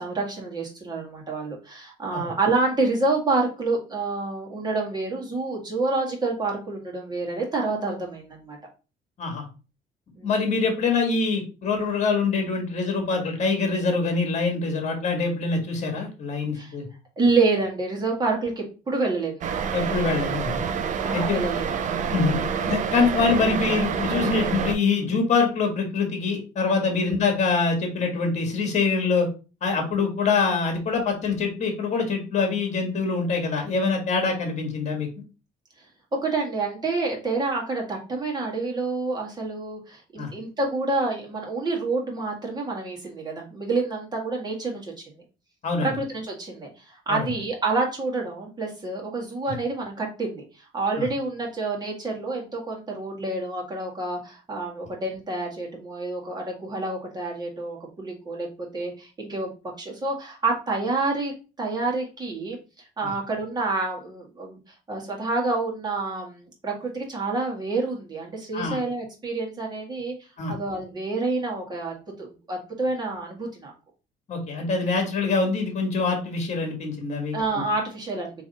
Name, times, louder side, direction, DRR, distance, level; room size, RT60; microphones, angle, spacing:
voice 1, 0.0-8.6 10.2-10.3 16.5-16.7 17.2-19.6 21.0-21.6 27.0-27.1 36.2-44.9 45.8-50.4 50.7-58.5 58.7-59.5 59.8-61.3 61.6-62.6 63.0-64.6 64.9-70.1 70.5-73.7 77.3-78.3, right 3 dB, 25° right, -1 dB, 1.8 m, -28 dB
voice 2, 10.2-16.9 19.7-20.6 21.1-21.4 22.1-29.3 29.6-35.1 40.2-40.3 45.6-45.9 47.1-47.3 51.0-51.1 63.0-63.1 68.5-68.8 70.4-70.6 74.3-77.4, left 4 dB, 45° left, 3 dB, 1.7 m, -24 dB
sound 1, 19.4-24.8, right 7 dB, 45° right, 0.6 m, -27 dB
3.6 x 3.1 x 4.1 m, 0.33 s
cardioid pair, 110°, 17 cm